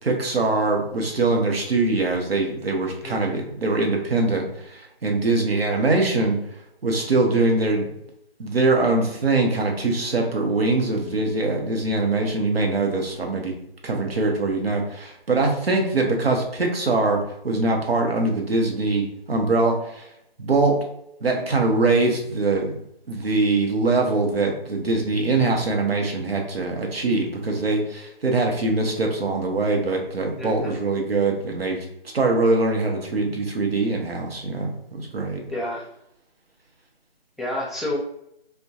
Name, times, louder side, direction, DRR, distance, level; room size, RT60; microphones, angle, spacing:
voice 1, 0.0-6.4 6.8-7.9 8.4-13.5 13.8-20.1 20.4-20.8 21.2-22.8 23.1-31.8 32.1-35.4, right 3 dB, 75° right, 1 dB, 0.7 m, -23 dB
voice 2, 3.0-3.4 30.4-30.8 35.5-35.8 37.4-38.0, left 1 dB, ahead, -5 dB, 0.3 m, -30 dB
2.3 x 2.1 x 2.7 m, 0.78 s
figure-of-eight pair, 180°, 30 cm